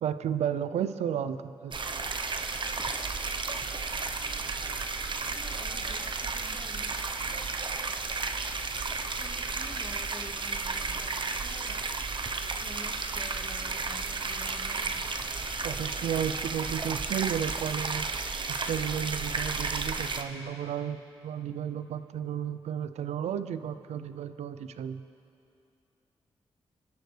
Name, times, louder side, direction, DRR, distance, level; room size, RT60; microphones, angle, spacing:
voice 1, 0.0-1.7 15.6-18.1 18.5-25.0, right 9 dB, 85° right, 12 dB, 0.6 m, -33 dB
sound 1, 1.7-20.2, right 4 dB, 45° right, 0.9 m, -33 dB
voice 2, 5.3-7.4 9.1-11.9 12.6-15.1, left 2 dB, 30° left, 3 dB, 1.8 m, -49 dB
25.5 x 12.5 x 3.4 m, 2.7 s
supercardioid pair, 50°, 11 cm